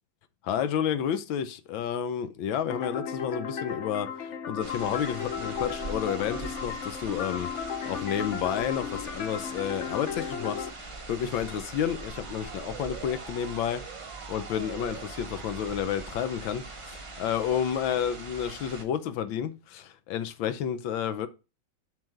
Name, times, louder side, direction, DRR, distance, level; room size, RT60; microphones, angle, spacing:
voice 1, 0.4-7.5 7.8-13.8 14.3-21.3, left 9 dB, 80° left, 1.4 m, -31 dB
sound 1, 2.7-10.7, left 6 dB, 50° left, 0.9 m, -35 dB
sound 2, 4.6-18.8, right 3 dB, 35° right, 0.5 m, -42 dB
Motor vehicle (road) / Siren, 10.9-16.7, right 10 dB, 75° right, 1.4 m, -47 dB
7.6 x 3.8 x 6.5 m
omnidirectional pair, 2.2 m